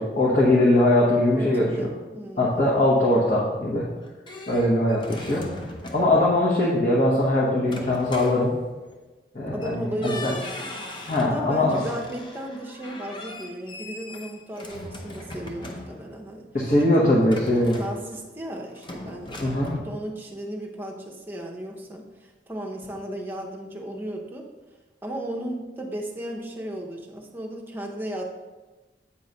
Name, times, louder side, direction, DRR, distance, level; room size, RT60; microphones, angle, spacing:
voice 1, 0.0-1.9 2.4-3.8 4.5-5.4 5.9-8.5 9.3-10.3 11.1-11.8 16.5-17.8 19.4-19.7, left 1 dB, 45° left, -6 dB, 1.1 m, -21 dB
voice 2, 1.3-2.7 9.5-10.7 11.2-16.5 16.8-17.1 17.7-24.5 25.0-28.2, right 1 dB, 10° right, 0 dB, 0.7 m, -35 dB
sound 1, 3.8-6.3 7.6-9.0 9.6-9.7 10.0-11.4 11.7-16.2 17.2-18.4 18.8-19.8, left 1 dB, 25° left, 0.7 m, -40 dB
8.4 x 3.1 x 5.3 m, 1.2 s
head